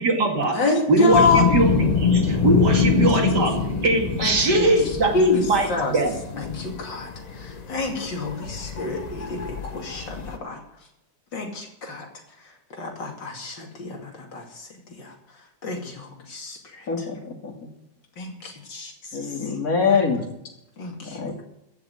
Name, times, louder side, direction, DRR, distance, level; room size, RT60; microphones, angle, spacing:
voice 1, 0.0-0.6 0.9-6.2, right 2 dB, 65° right, 1 dB, 3.0 m, -22 dB
voice 2, 0.5-1.4 4.2-4.7 5.1-5.4 5.7-5.9 6.4-7.1 7.4-10.6 11.3-12.1 12.7-14.7 15.0-15.1 15.6-16.9 18.2-18.9 20.8-21.2, left 4 dB, 75° left, 1 dB, 3.2 m, -27 dB
sound 1, 1.1-10.4, left 5 dB, 35° left, 0.7 m, -25 dB
voice 3, 16.9-17.7 19.1-20.3 21.0-21.4, left 5 dB, 50° left, 2 dB, 2.5 m, -25 dB
15.0 x 6.8 x 9.4 m, 0.84 s
omnidirectional pair, 2.0 m